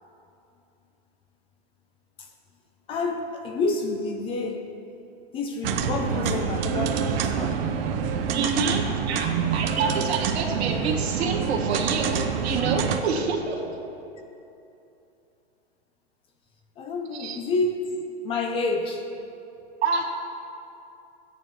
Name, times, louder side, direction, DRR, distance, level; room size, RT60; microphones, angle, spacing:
voice 1, 2.9-4.7 5.3-7.6 8.9-9.1 16.8-19.1, left 3 dB, 20° left, 5 dB, 0.4 m, -29 dB
sound 1, 5.6-13.0, right 7 dB, 65° right, 0.9 m, -26 dB
voice 2, 8.3-13.6 17.1-17.4 19.8-20.0, right 4 dB, 85° right, 0 dB, 1.7 m, -27 dB
13.5 x 9.4 x 3.1 m, 2.8 s
hypercardioid pair, 140°, 31 cm